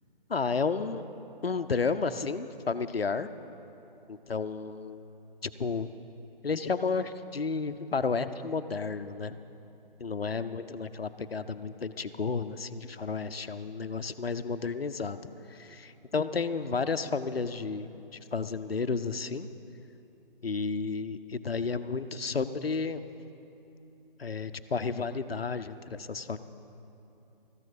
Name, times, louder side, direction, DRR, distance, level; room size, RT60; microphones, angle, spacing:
voice 1, 0.3-1.0 1.4-3.3 4.1-5.1 5.4-5.9 6.4-9.4 10.0-15.2 15.5-19.5 20.4-23.0 24.2-26.4, left 4 dB, 85° left, 11 dB, 0.7 m, -32 dB
14.0 x 9.0 x 6.9 m, 2.9 s
figure-of-eight pair, 145°, 29 cm